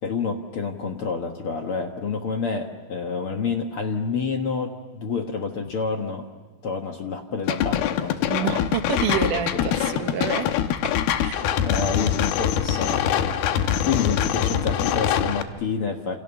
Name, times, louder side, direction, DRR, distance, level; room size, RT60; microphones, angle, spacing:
voice 1, 0.0-6.3 6.6-8.5 8.9-9.7 11.6-13.4 13.8-16.2, left 5 dB, 60° left, 4 dB, 1.4 m, -28 dB
sound 1, 7.5-15.4, left 9 dB, 80° left, 2.9 m, -24 dB
voice 2, 8.3-10.5 11.2-11.4, right 9 dB, 70° right, 8 dB, 2.2 m, -28 dB
28.5 x 28.5 x 7.0 m, 1.3 s
omnidirectional pair, 4.4 m